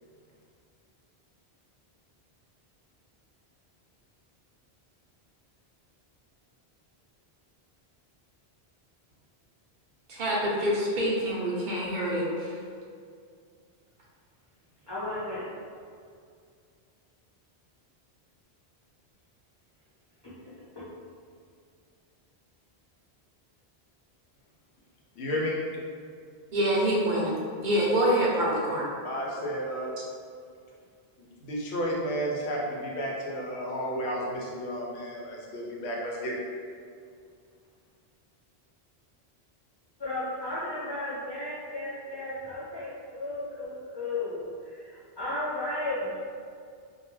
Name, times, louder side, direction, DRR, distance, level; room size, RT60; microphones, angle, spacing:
voice 1, 10.1-12.7 26.5-27.3 27.6-28.9, right 1 dB, 55° right, -5 dB, 0.7 m, -26 dB
voice 2, 14.9-15.5 20.8-20.9 40.0-46.2, left 2 dB, 35° left, -11 dB, 0.4 m, -34 dB
voice 3, 25.2-25.5 29.0-29.9 31.2-36.4, equal, 85° left, -2 dB, 0.8 m, -32 dB
2.2 x 2.2 x 3.0 m, 2.2 s
omnidirectional pair, 1.1 m